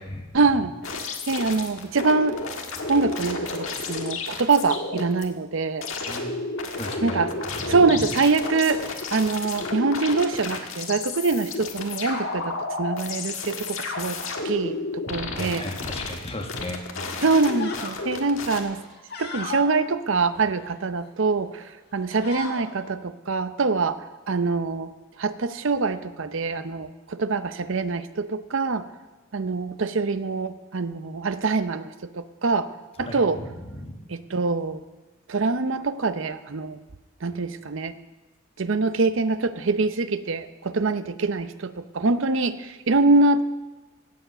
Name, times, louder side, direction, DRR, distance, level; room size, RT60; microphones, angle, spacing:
voice 1, 0.3-2.4 2.9-5.9 7.0-7.3 7.7-14.2 14.4-15.7 17.2-18.8 19.2-21.6 21.9-24.0 24.3-24.9 25.2-28.9 29.3-32.7 33.0-33.4 34.1-34.8 35.3-36.8 37.2-38.0 38.6-43.4, right 3 dB, 65° right, 12 dB, 0.6 m, -24 dB
sound 1, 0.8-5.2 5.8-18.6, left 3 dB, 70° left, 1.6 m, -32 dB
voice 2, 6.8-8.1 15.3-17.2 33.0-34.0, left 1 dB, 25° left, 2 dB, 1.7 m, -36 dB
sound 2, 16.5-16.8 17.2-18.0 18.4-19.7 20.2-21.1 21.5-21.7 22.0-22.6, left 4 dB, 50° left, 1.8 m, -37 dB
17.0 x 7.2 x 6.7 m, 1.2 s
head